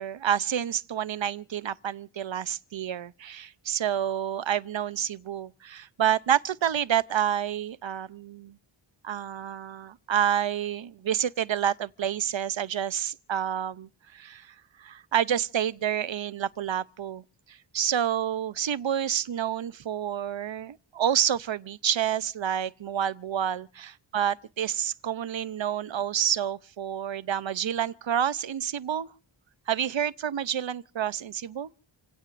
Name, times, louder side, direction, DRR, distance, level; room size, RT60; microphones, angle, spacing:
voice 1, 0.0-8.6 9.0-17.2 17.5-29.1 29.7-31.7, right 9 dB, 65° right, 0.8 m, -29 dB
29.5 x 17.0 x 2.6 m
wide cardioid pair, 70°, 49 cm